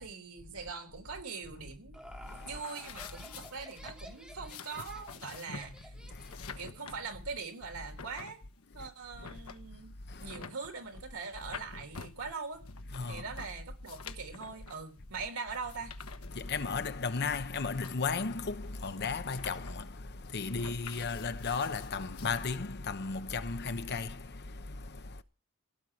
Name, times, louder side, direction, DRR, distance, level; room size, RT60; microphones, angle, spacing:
voice 1, 0.0-2.0 2.4-5.7 6.6-8.4 8.7-9.9 10.2-12.6 13.1-15.9, right 4 dB, 80° right, 3.5 m, -42 dB
Laughter, 1.5-6.7, equal, 5° right, 2.4 m, -53 dB
voice 2, 2.2-2.6 6.0-6.7 8.8-8.9 10.1-10.4 12.9-13.2 16.3-25.2, left 4 dB, 50° left, 0.9 m, -35 dB
sound 1, 2.6-22.5, left 6 dB, 80° left, 1.2 m, -49 dB
16.5 x 6.5 x 9.9 m
head